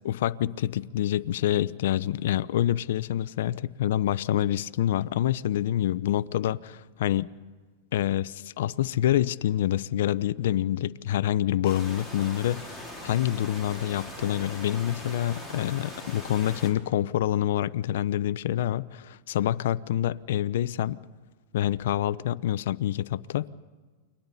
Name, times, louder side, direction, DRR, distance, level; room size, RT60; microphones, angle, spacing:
voice 1, 0.0-7.3 7.9-12.7 13.0-21.0 21.5-23.5, left 12 dB, 75° left, 0.6 m, -27 dB
sound 1, 11.6-16.7, left 1 dB, 10° right, 4.7 m, -41 dB
29.5 x 23.5 x 4.2 m
supercardioid pair, 135°, 0 cm